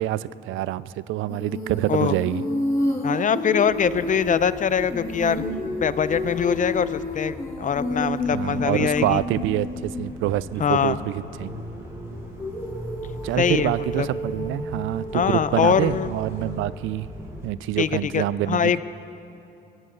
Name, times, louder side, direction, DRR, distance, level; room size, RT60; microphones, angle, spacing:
voice 1, 0.0-2.4 8.3-11.6 13.2-17.1 17.4-18.6, right 14 dB, 85° right, 18 dB, 0.4 m, -26 dB
Female singing, 1.3-10.2 12.4-16.6, left 1 dB, 15° left, 4.2 m, -30 dB
voice 2, 3.0-5.4 5.8-9.2 10.6-11.0 13.4-14.1 15.1-16.1 17.8-18.8, left 7 dB, 40° left, 15 dB, 0.6 m, -23 dB
sound 1, 3.7-17.5, equal, 15° right, 5.1 m, -39 dB
23.5 x 15.5 x 3.9 m, 2.7 s
cardioid pair, 90°, 20 cm